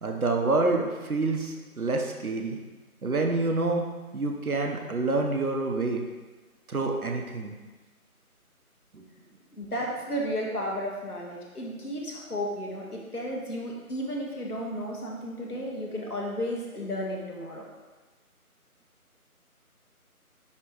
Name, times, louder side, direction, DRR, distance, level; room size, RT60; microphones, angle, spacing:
voice 1, 0.0-2.6 3.0-3.9 4.1-6.0 6.7-7.5 8.9-9.0, right 3 dB, 70° right, 2 dB, 1.0 m, -27 dB
voice 2, 9.6-17.7, equal, 85° left, -2 dB, 1.7 m, -33 dB
9.8 x 3.4 x 3.0 m, 1.3 s
figure-of-eight pair, 165°, 45 cm